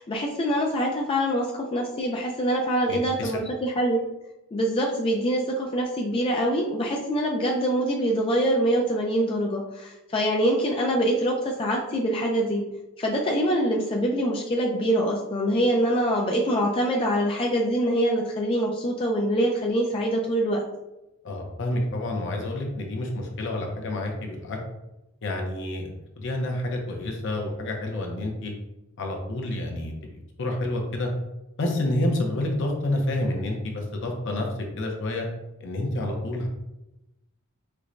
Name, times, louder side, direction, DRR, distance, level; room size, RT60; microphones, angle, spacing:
voice 1, 0.0-4.0 4.5-12.6 13.0-20.6, equal, 25° left, -1 dB, 0.3 m, -24 dB
voice 2, 2.9-3.3 21.2-24.6 25.2-25.9 26.2-28.5 29.0-31.1 31.6-34.5 34.8-35.3 35.6-36.5, left 1 dB, 60° left, 1 dB, 0.7 m, -29 dB
4.4 x 2.1 x 2.5 m, 0.95 s
head